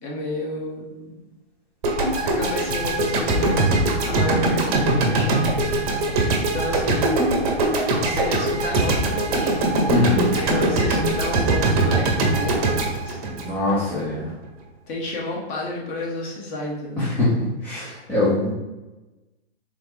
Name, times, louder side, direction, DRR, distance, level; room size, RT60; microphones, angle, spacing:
voice 1, 0.0-1.2 2.2-5.8 6.4-7.1 8.0-9.6 10.3-13.3 14.9-17.1, left 1 dB, 20° left, -2 dB, 0.8 m, -31 dB
sound 1, 1.8-14.0, right 2 dB, 35° right, 0.7 m, -21 dB
voice 2, 9.9-10.3 13.2-14.3 17.0-17.3 17.6-18.5, left 2 dB, 5° left, -11 dB, 0.4 m, -23 dB
3.5 x 3.0 x 3.5 m, 1.1 s
hypercardioid pair, 140°, 33 cm